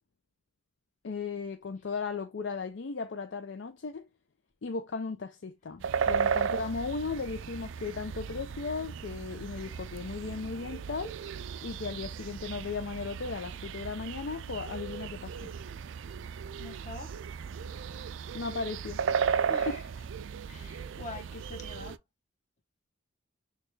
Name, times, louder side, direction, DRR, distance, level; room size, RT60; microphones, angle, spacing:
voice 1, 1.0-4.1 4.6-11.1 11.6-15.5 18.3-19.2 19.7-19.8, left 4 dB, 65° left, 0.5 m, -36 dB
sound 1, 5.8-22.0, right 6 dB, 70° right, 0.4 m, -35 dB
voice 2, 16.6-17.2 19.5-19.8 20.4-22.0, left 2 dB, 40° left, 1.3 m, -44 dB
6.5 x 2.4 x 3.2 m
head